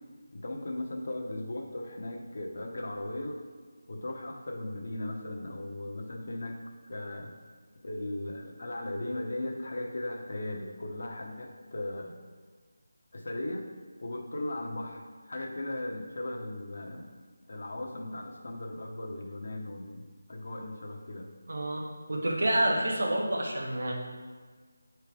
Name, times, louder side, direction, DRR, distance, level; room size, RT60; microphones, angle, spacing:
voice 1, 0.3-3.4 3.9-6.6 6.9-7.3 7.8-12.1 13.1-13.7 14.0-17.1 17.5-21.3, left 1 dB, 60° left, 1 dB, 1.1 m, -37 dB
voice 2, 21.5-23.9, right 1 dB, 65° right, -1 dB, 1.5 m, -28 dB
8.2 x 4.5 x 3.5 m, 1.5 s
figure-of-eight pair, 165°, 0 cm